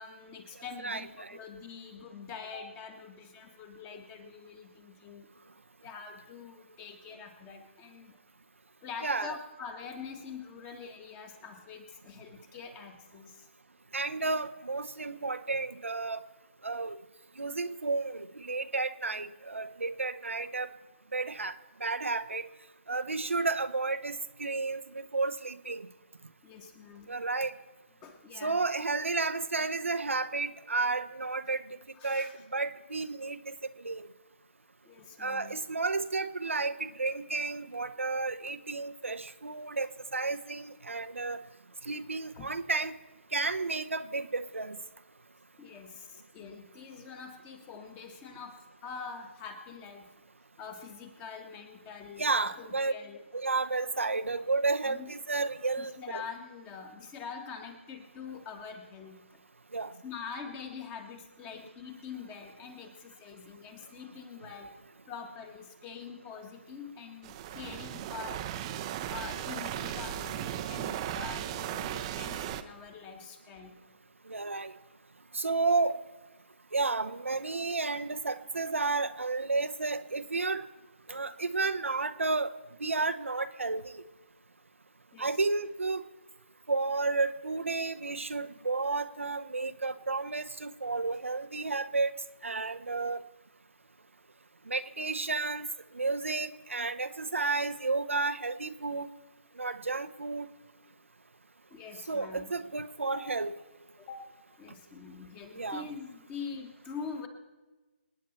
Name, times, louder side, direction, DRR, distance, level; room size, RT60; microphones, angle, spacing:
voice 1, 0.0-5.3 5.8-8.2 8.8-13.5 26.4-27.1 28.0-28.7 31.9-32.3 34.8-35.6 42.3-42.5 45.6-48.6 48.8-50.1 50.6-53.2 54.8-55.1 55.8-59.2 60.0-64.7 65.1-68.4 69.1-73.8 79.5-79.6 85.1-85.4 101.7-102.5 103.1-103.2 104.0-104.3 104.6-107.3, left 6 dB, 20° left, 6 dB, 1.6 m, -44 dB
voice 2, 0.8-1.4 9.0-9.4 13.9-16.2 16.6-17.0 17.4-20.7 21.1-21.5 21.8-22.4 22.9-25.9 27.1-27.5 28.4-31.6 32.0-34.1 35.2-41.4 41.9-42.9 43.3-44.8 52.2-52.9 53.3-56.2 59.7-59.9 74.3-74.7 75.3-76.0 76.7-80.7 81.1-82.5 82.8-84.0 85.2-86.0 86.7-92.1 92.4-93.2 94.7-95.7 95.9-99.1 99.6-100.5 102.1-103.5 105.5-105.8, right 3 dB, 75° right, 10 dB, 0.8 m, -32 dB
sound 1, 67.2-72.6, right 11 dB, 25° right, 0.7 m, -36 dB
26.5 x 9.6 x 4.4 m, 1.2 s
figure-of-eight pair, 140°, 7 cm